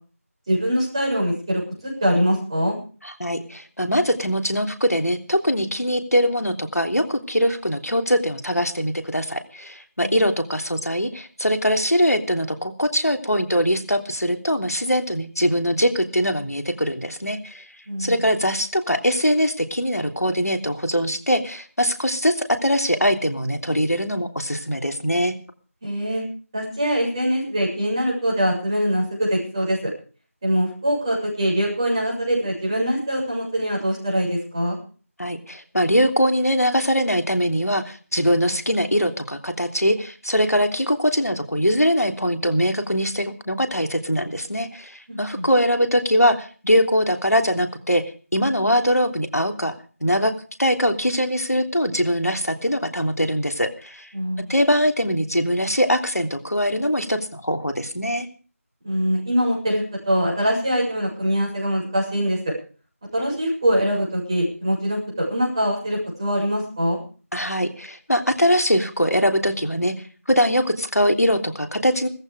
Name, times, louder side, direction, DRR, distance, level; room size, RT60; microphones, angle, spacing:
voice 1, 0.5-2.8 10.0-10.1 17.9-18.2 25.8-26.2 26.5-29.9 30.4-34.8 45.1-45.5 54.1-54.5 58.8-62.5 63.1-67.0, equal, 20° right, -3 dB, 7.1 m, -23 dB
voice 2, 3.0-17.6 18.0-25.3 35.2-48.0 48.3-49.7 50.0-50.3 50.6-54.1 54.5-58.3 67.3-69.9 70.3-72.1, equal, 90° left, 6 dB, 3.3 m, -22 dB
17.5 x 14.5 x 5.0 m, 0.40 s
figure-of-eight pair, 170°, 8 cm